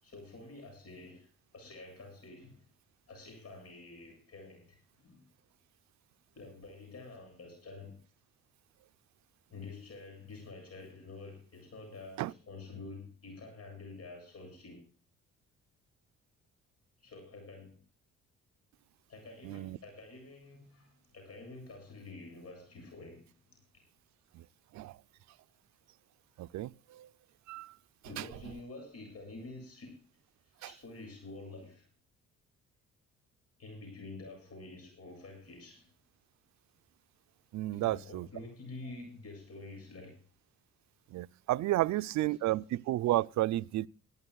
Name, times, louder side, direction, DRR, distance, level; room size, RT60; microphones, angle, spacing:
voice 1, 0.0-2.6 3.1-5.2 6.4-8.0 9.5-14.8 17.0-17.8 19.1-23.3 23.7-23.8 28.0-30.0 30.6-31.9 33.6-35.9 37.7-40.2, left 3 dB, 55° left, 7.6 m, -48 dB
voice 2, 19.4-19.8 24.3-24.5 24.7-25.0 26.4-27.1 27.5-27.8 28.2-28.3 30.6-30.7 37.5-38.3 41.1-43.9, right 16 dB, 65° right, 0.5 m, -32 dB
23.0 x 13.5 x 2.3 m
cardioid pair, 90°, 30 cm